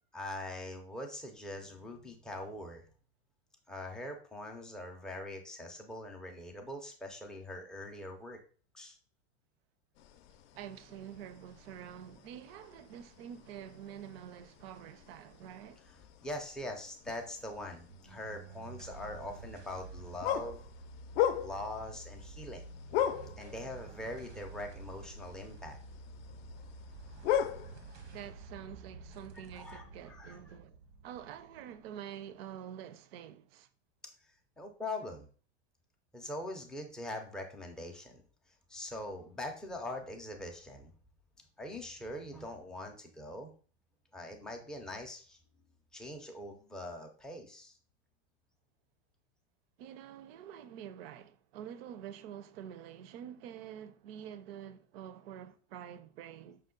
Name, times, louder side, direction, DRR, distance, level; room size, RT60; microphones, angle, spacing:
voice 1, 0.1-2.8 3.7-8.4 8.7-9.0 16.2-20.6 21.4-22.7 23.4-25.8 29.5-30.5 34.6-35.3 36.1-38.2 38.7-40.9 41.6-43.5 44.1-45.4 45.9-47.8, left 1 dB, ahead, 0.3 m, -42 dB
sound 1, 10.0-28.2, left 10 dB, 65° left, 0.5 m, -40 dB
voice 2, 10.5-15.8 23.2-23.3 28.1-33.7 49.8-56.6, right 9 dB, 65° right, 0.5 m, -47 dB
sound 2, 17.9-32.5, right 3 dB, 90° right, 1.0 m, -50 dB
5.6 x 2.1 x 3.7 m
supercardioid pair, 135°, 33 cm